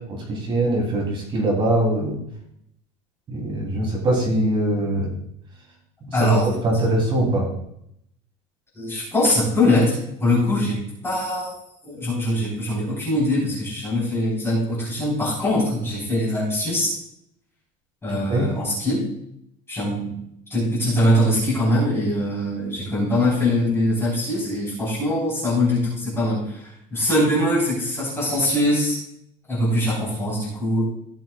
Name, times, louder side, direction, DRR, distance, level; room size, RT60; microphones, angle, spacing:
voice 1, 0.1-2.2 3.3-5.1 6.0-6.4 6.6-7.5 18.3-18.5, right 1 dB, 25° right, -1 dB, 3.2 m, -22 dB
voice 2, 6.1-6.5 8.7-11.5 11.9-16.9 18.0-19.1 19.7-20.2 20.5-29.0 29.5-30.9, left 1 dB, 10° left, -9 dB, 4.1 m, -22 dB
17.0 x 7.0 x 2.4 m, 0.75 s
cardioid pair, 170°, 20 cm